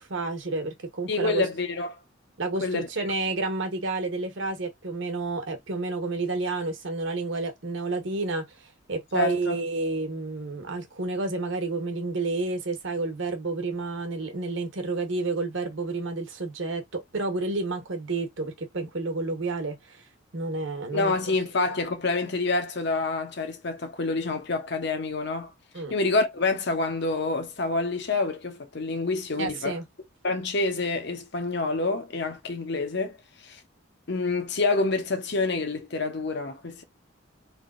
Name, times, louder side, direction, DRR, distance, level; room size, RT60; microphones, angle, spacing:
voice 1, 0.0-1.4 2.4-8.4 8.9-20.0 20.3-21.1 25.7-25.9 29.4-29.8, right 3 dB, 60° right, 1.1 m, -30 dB
voice 2, 1.1-2.0 2.6-2.9 9.1-9.6 20.9-25.5 25.9-29.7 30.2-33.2 33.4-33.6 34.1-36.8, left 3 dB, 55° left, 0.8 m, -27 dB
3.4 x 2.7 x 2.5 m
head